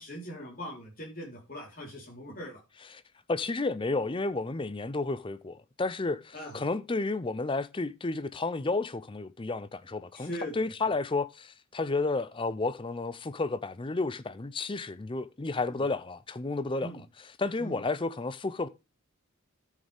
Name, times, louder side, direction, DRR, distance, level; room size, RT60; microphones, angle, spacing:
voice 1, 0.0-2.6 6.3-6.5 10.1-10.7 15.7-15.8 16.8-17.0 17.6-17.8, equal, 40° left, 3.9 m, -40 dB
voice 2, 3.3-18.7, left 3 dB, 25° left, 0.5 m, -32 dB
13.0 x 6.5 x 3.5 m
head